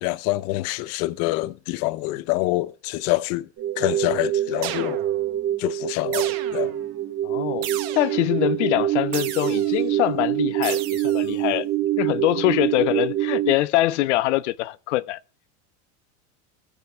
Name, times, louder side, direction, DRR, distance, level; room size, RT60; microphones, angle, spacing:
voice 1, 0.0-3.5 3.8-5.0 5.6-6.7, left 19 dB, 45° left, 0.6 m, -26 dB
sound 1, 3.6-13.5, right 13 dB, 35° right, 2.5 m, -25 dB
sound 2, 4.6-5.3 6.1-6.8 7.6-8.3 9.1-9.8 10.6-11.3, right 12 dB, 65° right, 1.5 m, -34 dB
voice 2, 7.2-7.7 7.9-11.7 12.0-15.2, left 17 dB, 85° left, 0.6 m, -23 dB
16.5 x 5.7 x 4.9 m
supercardioid pair, 150°, 34 cm